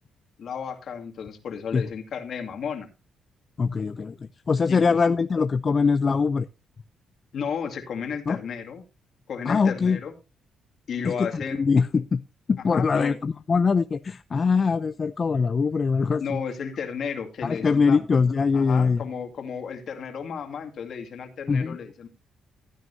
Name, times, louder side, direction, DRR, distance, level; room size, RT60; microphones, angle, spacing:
voice 1, 0.4-2.9 4.7-5.0 7.3-8.8 9.3-10.1 10.9-11.7 12.7-13.2 16.2-18.0 18.5-22.1, left 6 dB, 60° left, 6 dB, 2.3 m, -33 dB
voice 2, 3.6-4.2 4.5-6.5 8.3-8.4 9.5-10.0 11.0-12.2 12.5-16.4 17.4-19.0 21.5-21.8, left 5 dB, 40° left, 12 dB, 0.5 m, -22 dB
15.5 x 9.2 x 2.7 m, 0.26 s
cardioid pair, 90°, 0 cm